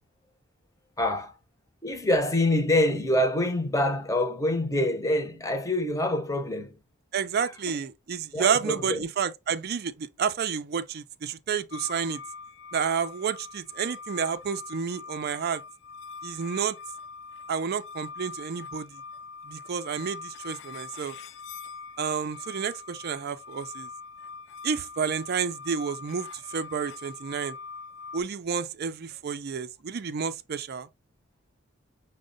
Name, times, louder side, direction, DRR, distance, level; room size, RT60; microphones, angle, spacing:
voice 1, 1.0-1.3 1.8-6.7 7.4-7.8 8.3-9.0, left 1 dB, 15° left, 0.7 m, -26 dB
voice 2, 7.1-12.2 12.7-15.6 16.2-16.8 17.5-19.0 19.5-21.2 22.0-23.9 24.6-27.6 28.1-30.9, right 6 dB, 50° right, 0.4 m, -30 dB
sound 1, 11.7-28.2, left 4 dB, 55° left, 0.4 m, -43 dB
6.3 x 2.1 x 3.8 m
head